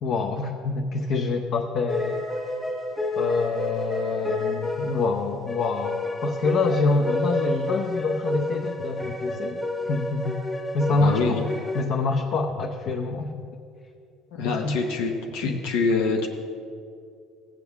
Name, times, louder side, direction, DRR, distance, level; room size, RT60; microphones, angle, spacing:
voice 1, 0.0-2.3 3.2-9.6 9.9-10.4 10.7-11.5 11.7-13.5 14.4-14.8 15.4-15.6, left 3 dB, 55° left, 1 dB, 0.7 m, -26 dB
sound 1, 1.9-11.8, left 2 dB, 10° left, 1.3 m, -30 dB
voice 2, 10.9-11.4 14.3-16.3, left 4 dB, 90° left, 1 dB, 1.0 m, -25 dB
16.5 x 7.7 x 3.5 m, 2.4 s
cardioid pair, 135°, 0 cm